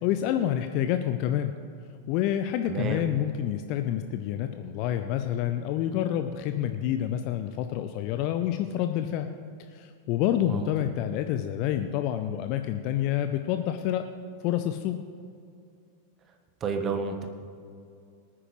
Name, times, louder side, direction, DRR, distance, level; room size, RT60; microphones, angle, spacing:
voice 1, 0.0-1.5 2.1-9.3 9.7-14.1 14.4-15.0, left 11 dB, 45° left, 8 dB, 0.5 m, -28 dB
voice 2, 2.6-3.1 10.4-10.7 16.6-17.3, right 4 dB, 30° right, 5 dB, 1.2 m, -30 dB
18.5 x 9.8 x 3.1 m, 2.4 s
figure-of-eight pair, 90°, 0 cm